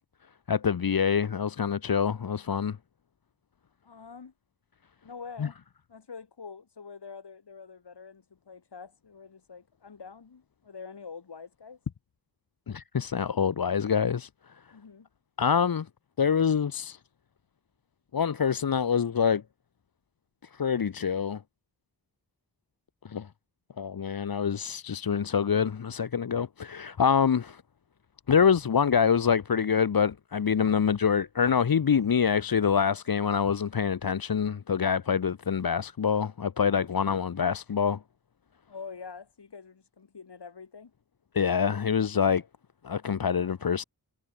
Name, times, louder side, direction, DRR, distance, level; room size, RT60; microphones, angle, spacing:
voice 1, 0.5-2.8 5.4-5.5 12.7-14.3 15.4-15.9 16.2-17.0 18.1-19.4 20.5-21.4 23.0-23.3 23.8-27.6 28.3-38.0 41.3-42.4 42.8-43.8, left 7 dB, 60° left, 1.0 m, -25 dB
voice 2, 3.8-4.3 5.0-5.6 5.9-11.8 14.7-15.1 38.7-40.9, left 5 dB, 75° left, 4.8 m, -45 dB
wide cardioid pair, 95°, 41 cm